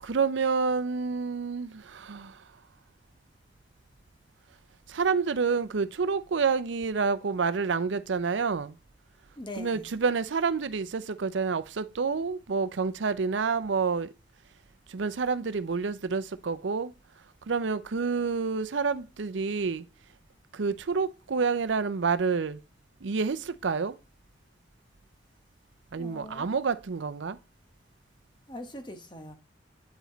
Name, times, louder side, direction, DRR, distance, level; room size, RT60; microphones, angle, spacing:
voice 1, 0.0-2.4 4.9-8.8 9.6-14.1 14.9-16.9 17.5-19.8 20.5-22.6 23.0-23.9 25.9-27.4, right 5 dB, 85° right, 0.5 m, -28 dB
voice 2, 9.4-9.8 26.0-26.6 28.5-29.3, left 1 dB, 25° left, 1.0 m, -42 dB
9.0 x 5.0 x 3.9 m
head